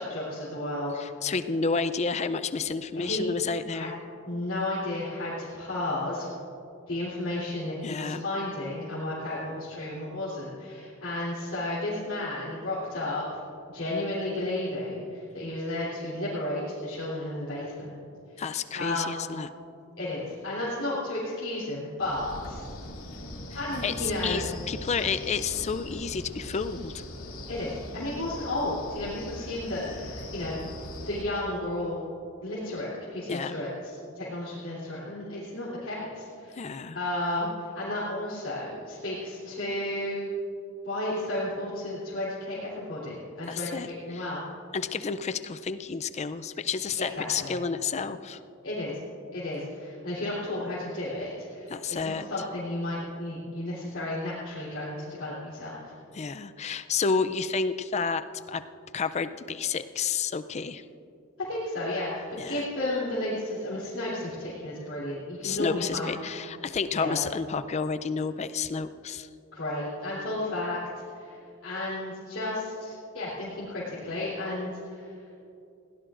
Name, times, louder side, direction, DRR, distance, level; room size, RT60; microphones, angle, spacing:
voice 1, 0.0-1.3 2.9-3.2 3.7-3.9 4.3-6.3 6.9-13.2 13.7-17.9 18.4-18.5 18.7-19.2 20.0-22.6 23.5-24.4 27.5-30.5 31.0-32.0 32.4-33.7 34.2-36.7 36.9-40.3 40.8-44.4 47.2-47.5 48.6-48.9 49.3-55.8 61.5-66.1 66.9-67.2 69.5-70.8 71.1-75.1, left 1 dB, 60° left, -9 dB, 3.5 m, -33 dB
voice 2, 0.9-3.9 7.8-8.2 18.4-19.5 23.8-27.0 33.3-33.5 36.6-37.0 43.5-44.3 44.7-48.4 51.7-52.3 56.1-58.6 58.9-60.8 62.4-62.7 65.4-69.3, left 5 dB, 30° left, 12 dB, 0.4 m, -30 dB
Wind, 22.0-31.2, left 1 dB, 80° left, 2.2 m, -40 dB
21.0 x 17.0 x 2.5 m, 2.7 s
head